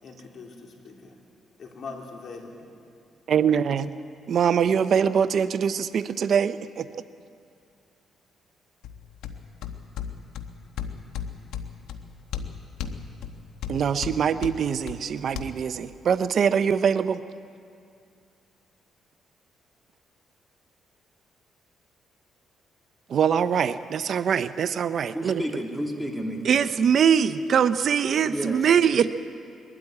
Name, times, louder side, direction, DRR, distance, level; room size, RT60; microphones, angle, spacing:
voice 1, 0.0-1.1 1.6-2.7, left 4 dB, 60° left, 3.4 m, -41 dB
voice 2, 3.3-3.9 4.3-6.9 13.7-17.2 23.1-25.4 26.4-29.1, right 7 dB, 60° right, 0.6 m, -23 dB
sound 1, 8.8-15.4, left 7 dB, 90° left, 1.1 m, -37 dB
voice 3, 25.1-26.4 28.2-28.7, equal, ahead, 2.8 m, -31 dB
21.0 x 12.5 x 9.7 m
cardioid pair, 90°, 0 cm